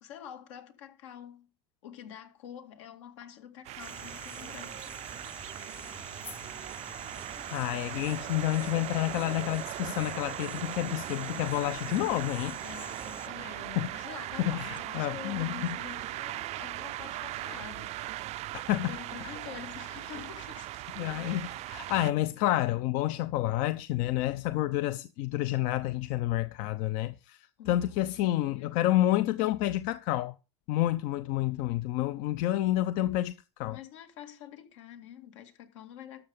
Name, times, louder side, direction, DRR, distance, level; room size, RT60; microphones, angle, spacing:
voice 1, 0.0-1.5 1.8-4.8 12.5-18.0 18.2-18.4 18.9-20.8 21.2-21.6 27.6-28.8 33.7-36.2, left 10 dB, 85° left, 2.2 m, -47 dB
sound 1, 3.6-22.1, right 16 dB, 45° right, 0.4 m, -39 dB
sound 2, 3.8-13.3, left 3 dB, 15° left, 0.7 m, -48 dB
voice 2, 7.5-12.6 13.8-13.9 14.4-15.5 18.7-18.9 19.2-19.4 21.0-27.4 27.7-30.3 30.7-33.3 33.6-33.8, left 15 dB, 65° left, 0.7 m, -29 dB
13.0 x 6.7 x 5.2 m
supercardioid pair, 110°, 15 cm